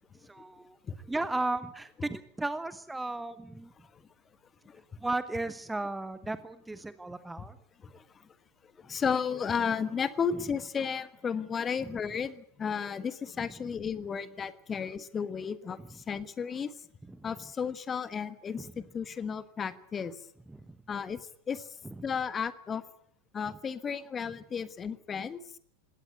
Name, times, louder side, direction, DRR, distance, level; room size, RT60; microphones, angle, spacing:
voice 1, 0.2-0.8 1.1-3.7 5.0-7.6 10.3-10.4 11.8-12.0 13.4-13.5 15.8-16.0 17.1-17.3 18.6-18.8 20.5-20.8 21.8-22.1, right 2 dB, 5° right, 14 dB, 1.1 m, -35 dB
voice 2, 8.8-16.7 17.2-20.2 20.9-21.7 22.0-22.8 23.3-25.4, left 6 dB, 20° left, 15 dB, 1.4 m, -33 dB
21.0 x 18.0 x 9.5 m, 0.64 s
figure-of-eight pair, 90°, 0 cm